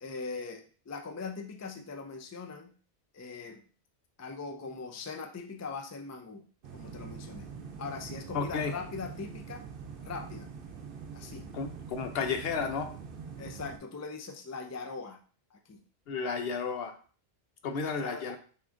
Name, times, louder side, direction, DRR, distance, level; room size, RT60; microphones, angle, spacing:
voice 1, 0.0-2.7 3.1-3.6 4.2-6.4 6.7-7.5 7.8-9.6 10.0-10.5 11.1-11.5 13.4-15.2 15.5-15.8 18.0-18.3, left 4 dB, 30° left, 4 dB, 0.3 m, -41 dB
sound 1, 6.6-13.8, right 6 dB, 60° right, 0.8 m, -44 dB
voice 2, 8.3-8.7 11.5-12.9 16.1-16.9 17.6-18.4, left 5 dB, 70° left, 7 dB, 0.8 m, -32 dB
6.0 x 2.8 x 2.5 m, 0.40 s
omnidirectional pair, 1.1 m